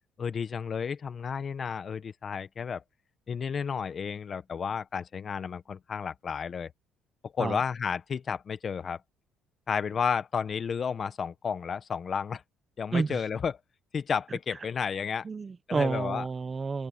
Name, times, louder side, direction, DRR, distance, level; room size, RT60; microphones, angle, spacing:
voice 1, 0.2-2.8 3.3-6.7 7.2-9.0 9.7-12.4 12.8-13.6 13.9-15.3 15.7-16.3, left 6 dB, 40° left, 1.2 m, -32 dB
voice 2, 12.9-13.2 15.2-16.9, right 4 dB, 30° right, 0.9 m, -30 dB
cardioid pair, 105°, 0 cm